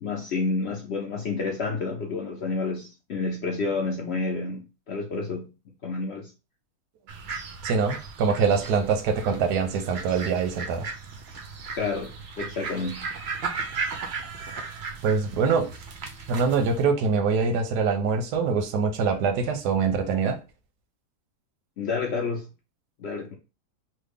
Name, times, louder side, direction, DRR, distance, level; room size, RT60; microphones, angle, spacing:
voice 1, 0.0-5.5 5.8-6.3 11.7-13.1 21.8-22.5 23.0-23.3, left 4 dB, 65° left, 0.6 m, -29 dB
sound 1, 7.1-16.8, right 4 dB, 65° right, 0.6 m, -36 dB
voice 2, 7.6-10.9 15.0-15.7 16.3-20.4, right 5 dB, 90° right, 1.2 m, -24 dB
3.2 x 2.2 x 3.4 m
omnidirectional pair, 1.7 m